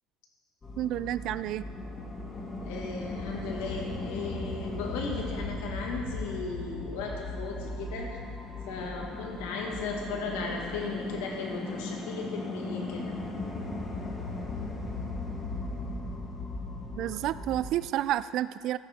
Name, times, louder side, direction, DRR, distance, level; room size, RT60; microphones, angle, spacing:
sound 1, 0.6-17.7, left 2 dB, 25° left, 1.6 m, -37 dB
voice 1, 0.8-1.7 16.9-18.8, right 13 dB, 60° right, 15 dB, 0.3 m, -30 dB
voice 2, 2.6-8.2 8.7-13.2, left 4 dB, 90° left, 0 dB, 1.7 m, -36 dB
15.0 x 8.8 x 3.6 m, 2.2 s
supercardioid pair, 110°, 0 cm